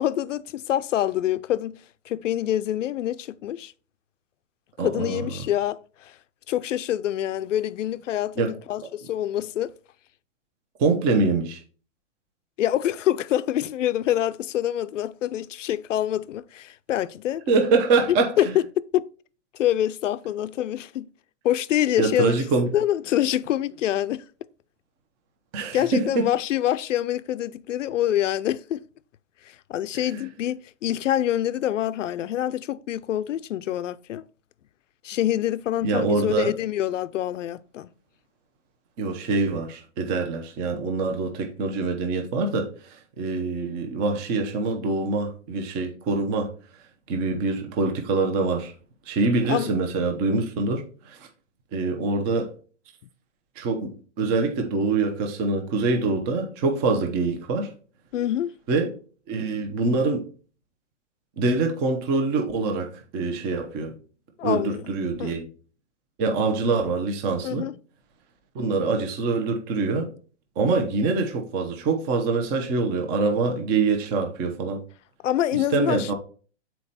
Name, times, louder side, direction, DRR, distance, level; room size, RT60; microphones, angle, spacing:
voice 1, 0.0-1.7 2.1-3.7 4.8-6.1 6.5-9.7 12.6-17.5 18.4-18.5 18.8-19.0 19.6-21.1 21.4-22.4 22.7-24.2 25.7-28.8 29.7-34.2 35.0-37.9 49.5-49.7 58.1-58.5 64.4-64.9 65.2-65.4 67.4-67.7 75.2-76.1, left 12 dB, 85° left, 0.6 m, -26 dB
voice 2, 4.8-5.3 8.4-8.6 10.8-11.6 17.5-18.5 22.0-22.7 25.5-26.3 30.1-30.3 35.8-36.5 39.0-46.5 47.1-48.7 49.1-51.3 51.7-52.5 53.6-57.7 58.7-58.9 59.3-60.2 61.4-63.9 64.4-65.5 66.2-67.6 68.5-70.1 70.6-74.8 75.5-76.1, right 3 dB, 25° right, 1.0 m, -25 dB
7.0 x 4.5 x 4.1 m
hypercardioid pair, 150°, 36 cm